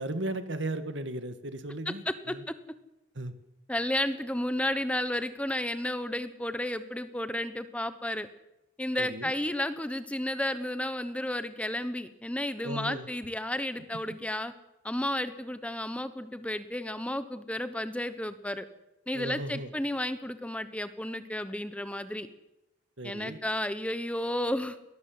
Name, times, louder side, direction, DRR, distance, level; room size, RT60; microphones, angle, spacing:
voice 1, 0.0-2.4 3.2-3.3 9.0-9.3 12.6-13.1 19.1-19.7 23.0-23.4, right 1 dB, 75° right, 10 dB, 1.9 m, -36 dB
voice 2, 1.9-2.5 3.7-8.3 8.8-14.5 14.8-18.7 19.1-22.3 23.0-24.8, left 1 dB, 5° left, 11 dB, 1.1 m, -32 dB
22.5 x 19.0 x 7.9 m, 0.92 s
head